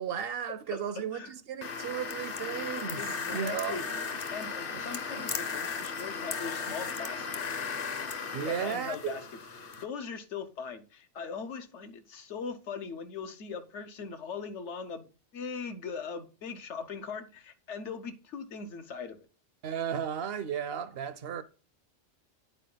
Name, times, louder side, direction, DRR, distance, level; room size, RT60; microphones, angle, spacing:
voice 1, 0.0-3.8 4.7-4.8 8.3-9.2 19.6-21.4, right 8 dB, 65° right, 0.7 m, -34 dB
sound 1, 1.6-9.8, left 5 dB, 50° left, 1.0 m, -36 dB
voice 2, 3.0-3.8 4.3-7.4 8.4-9.2 9.6-15.1 15.3-19.2, left 5 dB, 75° left, 1.2 m, -40 dB
9.2 x 4.6 x 3.9 m
omnidirectional pair, 1.2 m